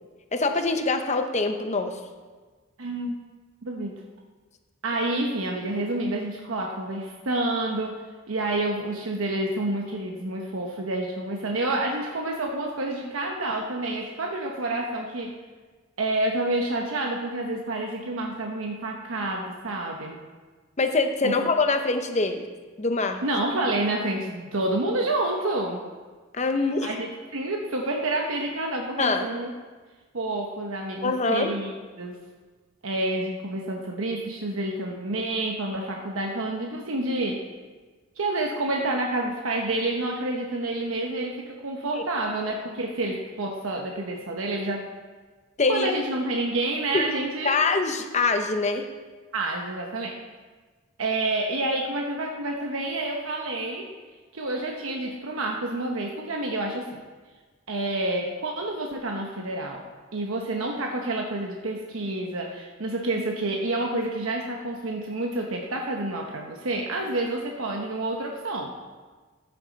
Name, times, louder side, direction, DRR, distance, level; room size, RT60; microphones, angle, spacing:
voice 1, 0.3-2.0 20.8-22.5 22.8-23.2 26.3-27.0 29.0-29.2 31.0-31.5 42.0-42.1 45.6-45.9 46.9-47.1 47.4-48.9, left 3 dB, 35° left, 6 dB, 0.8 m, -24 dB
voice 2, 2.8-3.2 3.6-4.0 4.8-8.0 8.3-15.4 16.0-20.2 21.2-21.3 23.2-25.8 26.8-29.5 30.1-32.2 32.8-37.4 38.2-44.9 45.7-47.6 49.3-50.2 51.0-53.9 54.3-57.0 57.7-59.8 60.1-69.0, right 2 dB, 90° right, 1 dB, 1.0 m, -28 dB
14.5 x 6.9 x 4.1 m, 1.4 s
head